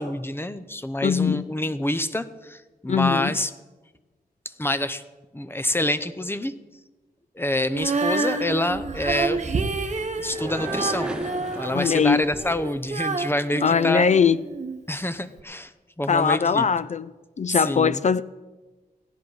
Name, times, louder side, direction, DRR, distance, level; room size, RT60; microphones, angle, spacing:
voice 1, 0.0-3.5 4.6-5.0 5.3-6.5 7.4-9.4 10.1-11.1 11.5-14.1 14.9-15.7 16.0-16.7 17.5-18.0, left 1 dB, 15° left, 11 dB, 0.7 m, -27 dB
voice 2, 1.0-1.4 2.9-3.3 11.7-12.3 13.6-14.4 16.1-17.1 17.4-18.2, left 6 dB, 50° left, 16 dB, 0.4 m, -21 dB
Female singing, 7.7-14.8 15.4-15.5, right 3 dB, 50° right, 1.0 m, -29 dB
sound 1, 9.0-12.7, right 1 dB, 5° right, 1.3 m, -37 dB
16.0 x 10.5 x 4.8 m, 1.2 s
cardioid pair, 70°, 16 cm